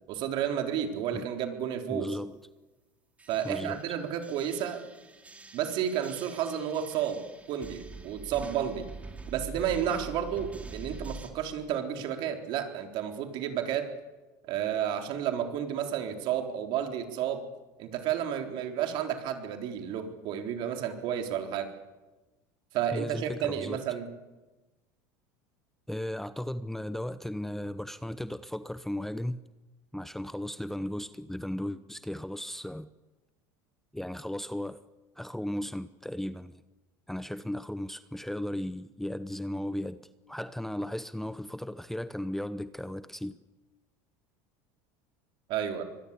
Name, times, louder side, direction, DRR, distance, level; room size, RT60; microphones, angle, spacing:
voice 1, 0.1-2.1 3.3-4.8 5.5-7.2 7.5-8.9 9.3-13.9 14.4-17.4 17.8-21.7 22.7-24.1 45.5-45.8, right 9 dB, 60° right, 3.9 m, -31 dB
voice 2, 1.9-2.4 3.4-3.8 22.9-23.8 25.9-29.4 29.9-32.9 33.9-34.8 35.2-36.6 37.1-40.0 40.3-43.4, left 1 dB, 5° left, 0.8 m, -36 dB
sound 1, 3.2-11.3, right 3 dB, 15° right, 2.9 m, -45 dB
24.5 x 21.0 x 8.5 m
supercardioid pair, 110°, 9 cm